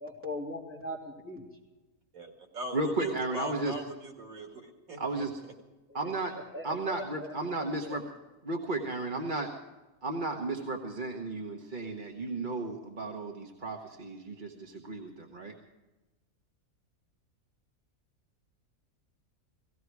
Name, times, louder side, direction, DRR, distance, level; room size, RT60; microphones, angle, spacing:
voice 1, 0.0-1.4 5.9-7.3 7.8-8.0, left 1 dB, 10° right, -3 dB, 3.2 m, -40 dB
voice 2, 2.1-5.3, right 2 dB, 85° right, 3 dB, 2.5 m, -40 dB
voice 3, 2.7-3.7 5.0-5.4 5.9-6.3 6.6-8.0 8.4-9.5 10.0-15.5, right 2 dB, 35° right, 1 dB, 1.3 m, -34 dB
18.0 x 16.0 x 4.7 m, 1.1 s
omnidirectional pair, 1.5 m